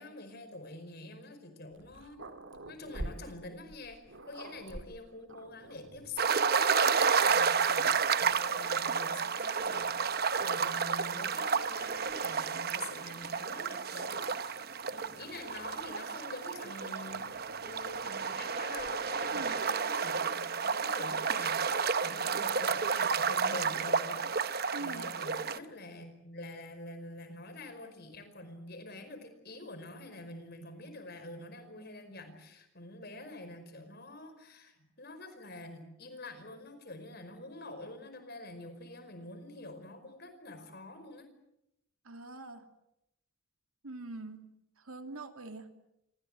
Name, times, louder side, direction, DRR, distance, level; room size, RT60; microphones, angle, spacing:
voice 1, 0.0-2.2 2.6-7.9 8.2-17.2 17.6-41.3, left 2 dB, 45° left, 9 dB, 5.1 m, -46 dB
Growling, 1.7-6.3 7.0-7.1 7.4-8.5 9.6-12.4 12.7-13.3 14.2-16.0 17.1-19.6, right 1 dB, 65° right, 2.1 m, -49 dB
sound 1, 6.2-25.6, right 5 dB, 45° right, 0.9 m, -31 dB
voice 2, 24.7-25.1 42.0-42.7 43.8-44.5 44.8-45.7, right 2 dB, 85° right, 6 dB, 2.8 m, -43 dB
28.0 x 24.0 x 7.8 m, 0.85 s
head